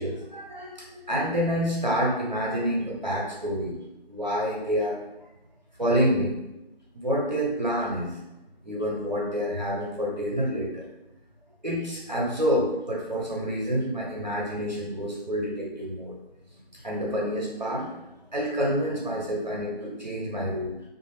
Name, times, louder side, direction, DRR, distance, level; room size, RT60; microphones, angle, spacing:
voice 1, 0.0-3.8 4.1-5.3 5.8-6.4 6.9-8.2 8.6-10.9 11.6-16.2 16.7-17.9 18.3-20.8, equal, 45° right, -4 dB, 0.6 m, -28 dB
2.7 x 2.4 x 3.1 m, 0.94 s
figure-of-eight pair, 165°, 30 cm